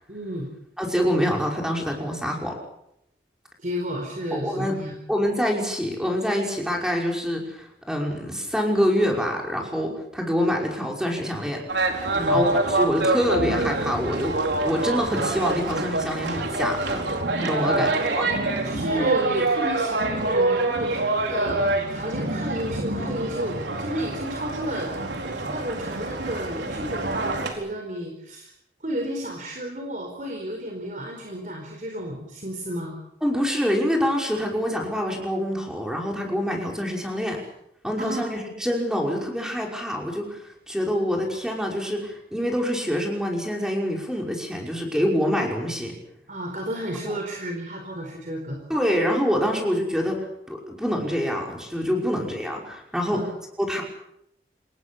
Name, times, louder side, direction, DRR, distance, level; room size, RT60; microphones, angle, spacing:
voice 1, 0.1-0.5 3.6-5.0 12.1-12.4 17.6-17.9 18.6-24.9 25.5-28.5 28.8-33.0 38.0-38.2 46.3-48.6 51.9-52.0 53.1-53.3, equal, 45° right, 2 dB, 4.6 m, -32 dB
voice 2, 0.8-2.5 4.3-4.8 5.1-11.6 12.3-17.1 17.4-18.3 33.2-37.4 37.8-45.9 47.0-47.2 48.7-53.3 53.6-53.8, equal, 5° right, 0 dB, 5.5 m, -26 dB
sound 1, 11.7-27.5, right 2 dB, 85° right, 4.5 m, -26 dB
27.0 x 20.5 x 7.1 m, 0.79 s
head